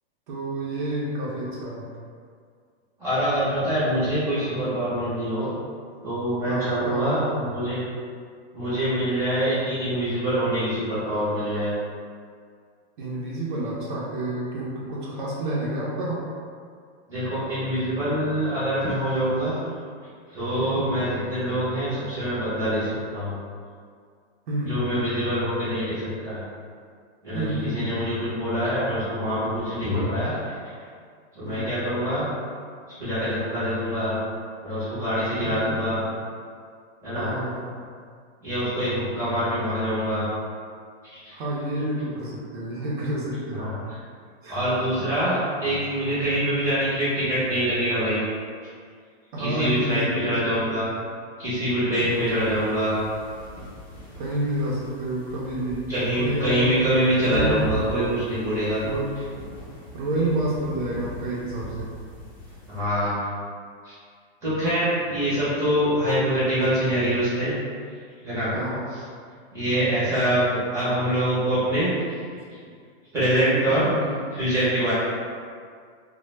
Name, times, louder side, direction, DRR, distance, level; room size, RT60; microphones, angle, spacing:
voice 1, 0.3-1.9 6.5-7.4 13.0-16.3 20.6-20.9 24.5-25.0 27.3-27.9 31.4-31.7 35.4-35.8 37.1-37.7 41.3-43.8 44.4-44.6 49.3-50.6 51.9-52.2 54.2-57.0 57.3-57.6 58.8-59.1 59.9-61.9 68.5-68.8 69.7-70.0 72.3-72.7 73.7-74.1, right 1 dB, 50° right, -5 dB, 0.5 m, -29 dB
voice 2, 3.0-5.5 6.0-7.8 8.5-11.7 17.1-19.6 20.3-23.4 24.7-26.4 27.2-30.5 31.3-32.3 32.9-34.2 34.6-36.0 37.0-37.3 38.4-40.3 41.0-41.3 43.5-44.0 44.5-48.2 49.4-50.9 51.4-53.0 55.9-58.8 62.7-63.2 63.8-63.9 64.4-67.5 68.2-68.5 69.5-71.9 73.1-73.9 74.3-74.9, equal, 10° right, -12 dB, 0.6 m, -25 dB
sound 1, 51.9-62.8, equal, 35° left, 0.6 m, -39 dB
2.1 x 2.1 x 3.1 m, 2.1 s
supercardioid pair, 165°, 32 cm